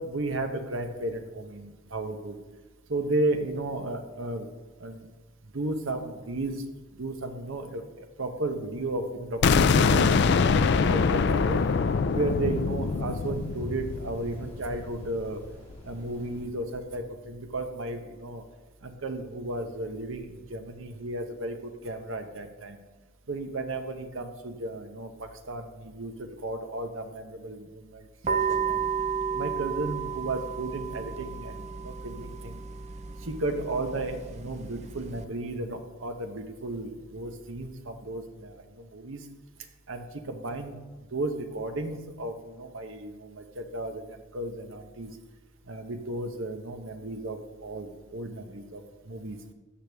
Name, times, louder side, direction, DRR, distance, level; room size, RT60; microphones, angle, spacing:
voice 1, 0.0-2.4 2.9-4.5 4.8-5.1 5.5-6.6 6.9-10.1 10.5-11.6 12.1-15.4 15.8-18.4 18.8-22.8 23.3-28.9 29.3-32.6 33.2-39.2 39.9-40.8 41.1-45.1 45.7-49.5, right 2 dB, 65° right, 6 dB, 0.9 m, -34 dB
sound 1, 9.4-15.2, left 5 dB, 50° left, 0.3 m, -24 dB
sound 2, 10.3-16.4, equal, 10° left, 3.1 m, -49 dB
sound 3, 28.2-35.2, right 6 dB, 30° right, 0.6 m, -33 dB
13.0 x 6.7 x 3.4 m, 1.2 s
head